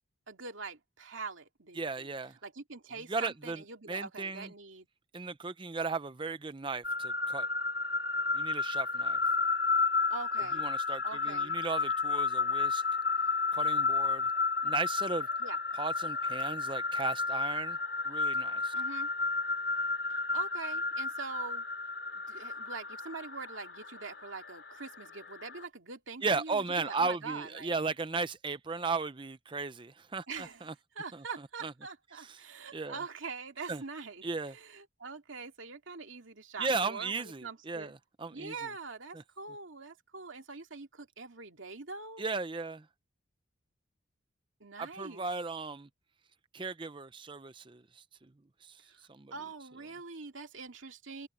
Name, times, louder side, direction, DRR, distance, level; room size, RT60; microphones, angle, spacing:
voice 1, 0.3-2.1 2.4-4.9 10.1-10.7 11.0-11.6 15.4-15.6 18.7-19.1 20.1-21.6 22.1-27.7 30.3-37.9 38.3-42.2 44.6-45.3 48.9-49.0 49.3-51.3, right 4 dB, 75° right, 2.3 m, -44 dB
voice 2, 1.8-2.4 3.1-4.5 5.1-7.5 8.3-9.2 10.5-12.8 13.5-14.3 14.6-15.3 15.7-17.8 18.1-18.7 26.2-30.7 31.1-31.2 31.6-31.7 32.1-32.4 32.7-33.0 33.7-33.8 34.2-34.5 36.6-38.5 42.2-42.9 44.8-45.9 46.5-48.3 48.6-48.8 49.1-49.3, right 4 dB, 25° right, 0.6 m, -36 dB
sound 1, 6.8-25.6, left 4 dB, 55° left, 4.0 m, -32 dB
open air
head